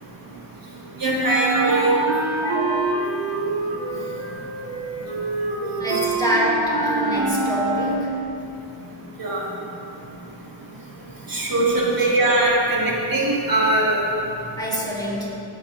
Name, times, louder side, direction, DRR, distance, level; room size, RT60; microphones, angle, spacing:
voice 1, 1.0-2.0 5.9-6.0 9.2-9.4 11.3-14.0, right 2 dB, 45° right, -4 dB, 1.8 m, -21 dB
Wind instrument woodwind instrument, 1.2-8.2, right 2 dB, 65° right, 1.4 m, -25 dB
voice 2, 2.4-2.8 5.6-8.1 12.0-12.1 14.6-15.3, equal, 10° left, -5 dB, 1.9 m, -26 dB
16.0 x 8.2 x 2.5 m, 2.8 s
wide cardioid pair, 105°, 49 cm